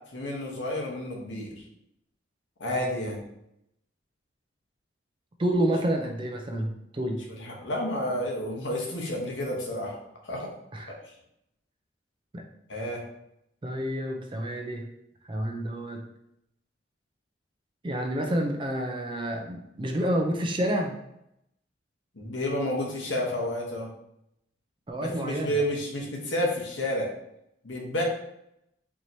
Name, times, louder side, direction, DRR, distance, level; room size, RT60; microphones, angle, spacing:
voice 1, 0.1-1.6 2.6-3.2 7.3-10.0 10.2-10.5 12.7-13.0 22.1-23.9 25.0-27.1 27.6-28.0, left 1 dB, 80° left, -1 dB, 1.0 m, -30 dB
voice 2, 5.4-7.2 10.7-10.9 12.3-12.4 13.6-14.9 15.2-16.0 17.8-21.0 24.9-25.5, right 1 dB, 25° right, 3 dB, 0.4 m, -29 dB
4.6 x 2.9 x 2.6 m, 0.81 s
head